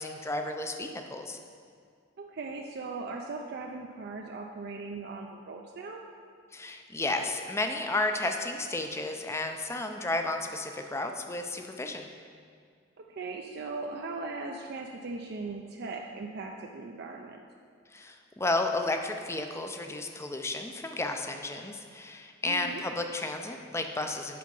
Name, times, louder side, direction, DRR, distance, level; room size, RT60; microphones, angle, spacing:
voice 1, 0.0-1.4 6.5-12.1 17.9-24.4, left 2 dB, 15° left, 5 dB, 0.5 m, -32 dB
voice 2, 2.2-6.0 13.0-17.4 22.4-22.8, right 3 dB, 55° right, 1 dB, 0.4 m, -39 dB
7.6 x 5.5 x 5.4 m, 2.2 s
head